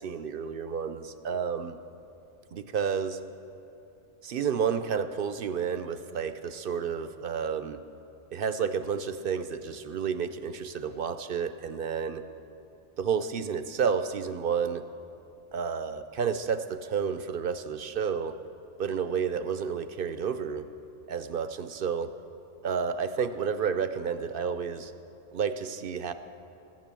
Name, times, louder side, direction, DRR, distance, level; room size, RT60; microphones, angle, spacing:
voice 1, 0.0-1.8 2.5-3.2 4.2-7.8 8.3-12.2 13.0-14.9 15.5-18.4 18.8-20.7 21.1-22.1 22.6-24.9 25.3-26.1, right 6 dB, 60° right, 11 dB, 0.7 m, -30 dB
14.5 x 10.5 x 7.5 m, 2.8 s
omnidirectional pair, 1.3 m